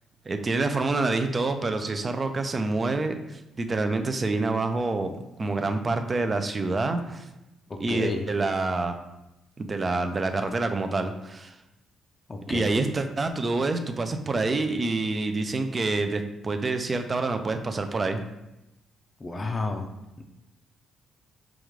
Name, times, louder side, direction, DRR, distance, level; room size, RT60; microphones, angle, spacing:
voice 1, 0.3-5.1 5.4-7.3 7.8-9.0 9.6-11.6 12.5-18.2, right 3 dB, 30° right, 7 dB, 0.4 m, -27 dB
voice 2, 7.9-8.2 12.3-12.9 19.2-19.9 20.2-20.3, left 2 dB, 30° left, 2 dB, 0.4 m, -30 dB
4.9 x 2.4 x 3.1 m, 0.93 s
cardioid pair, 90°, 0 cm